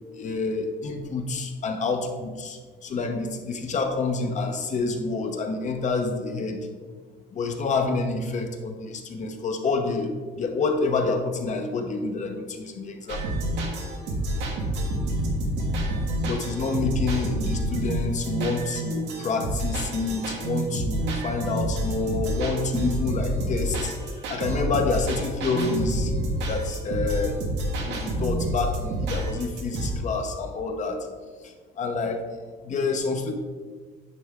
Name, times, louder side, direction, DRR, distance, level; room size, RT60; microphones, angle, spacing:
voice 1, 0.2-6.6 7.3-13.2 16.2-23.9 24.3-26.1 26.5-27.4 27.8-31.0 31.8-32.2 32.6-33.3, left 3 dB, 45° left, 5 dB, 0.9 m, -28 dB
sound 1, 13.1-29.9, right 1 dB, 85° right, 1.3 m, -28 dB
9.7 x 3.5 x 3.6 m, 1.5 s
cardioid pair, 110°, 17 cm